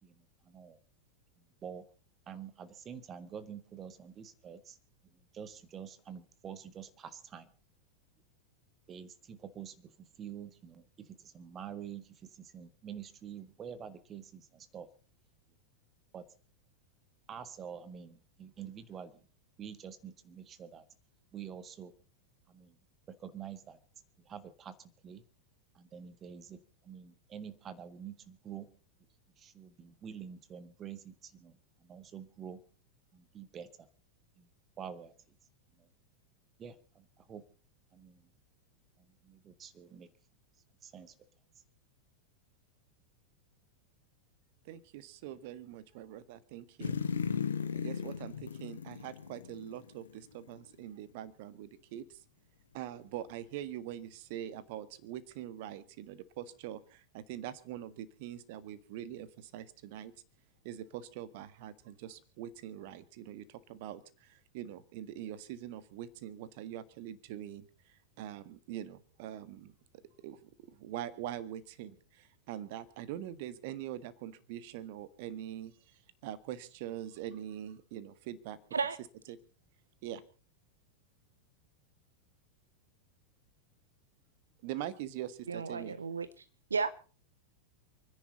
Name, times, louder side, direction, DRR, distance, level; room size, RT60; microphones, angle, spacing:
voice 1, 0.0-0.8 1.4-1.9 2.3-4.8 5.1-7.5 8.9-14.9 16.1-16.2 17.3-19.3 19.6-20.8 21.3-21.9 22.5-22.8 23.1-23.8 24.2-25.2 25.7-28.7 29.4-32.6 33.1-33.9 34.4-34.5 34.8-35.1 35.8-35.9 36.6-37.4 37.9-38.3 39.0-40.1 40.8-41.1, right 8 dB, 25° right, 1.6 m, -47 dB
voice 2, 44.6-46.9 47.7-52.2 52.7-60.1 60.6-67.6 68.2-75.7 76.2-78.6 79.3-79.4 80.0-80.2 84.6-86.0, right 11 dB, 50° right, 1.6 m, -43 dB
sound 1, 46.8-50.2 50.5-50.6, left 7 dB, 70° left, 1.3 m, -36 dB
voice 3, 85.5-86.3 86.7-86.9, right 5 dB, 75° right, 0.7 m, -33 dB
28.5 x 10.5 x 4.1 m
figure-of-eight pair, 90°, 0 cm